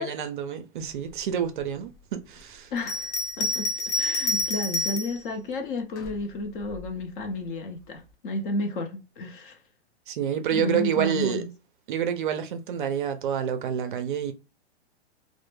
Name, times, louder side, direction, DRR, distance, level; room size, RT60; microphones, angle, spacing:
voice 1, 0.0-2.7 10.1-11.4 11.9-14.3, right 8 dB, 50° right, 0.4 m, -28 dB
voice 2, 2.7-3.1 3.4-3.7 4.0-9.6 10.5-11.5, left 2 dB, 50° left, 0.7 m, -32 dB
Bell, 2.8-5.2 6.0-6.9, left 1 dB, 85° left, 0.7 m, -28 dB
2.1 x 2.0 x 3.0 m
hypercardioid pair, 145°, 34 cm